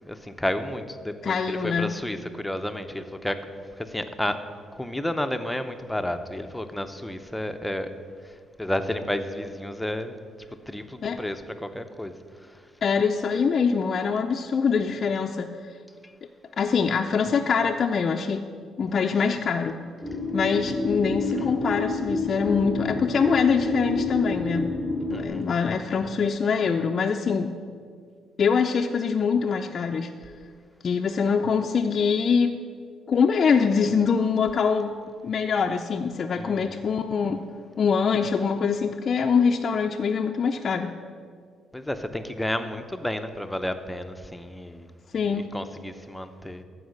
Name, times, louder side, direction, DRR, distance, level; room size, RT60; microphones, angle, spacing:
voice 1, 0.0-3.5 3.8-4.4 4.7-7.9 8.2-8.3 8.6-10.2 10.7-12.1 12.4-12.6 16.0-16.1 21.4-21.6 25.1-25.5 36.3-36.8 41.7-44.9 45.2-46.6, left 1 dB, 5° left, 8 dB, 0.7 m, -31 dB
voice 2, 1.2-1.9 11.0-11.2 12.8-15.5 16.6-18.5 18.8-19.8 20.3-24.7 25.1-27.5 28.4-30.1 30.8-32.5 33.1-35.0 35.2-37.4 37.8-40.9 45.1-45.5, left 6 dB, 50° left, 3 dB, 0.5 m, -24 dB
sound 1, 20.0-25.3, left 3 dB, 10° right, 1.3 m, -28 dB
14.5 x 4.8 x 6.5 m, 2.1 s
cardioid pair, 90°, 0 cm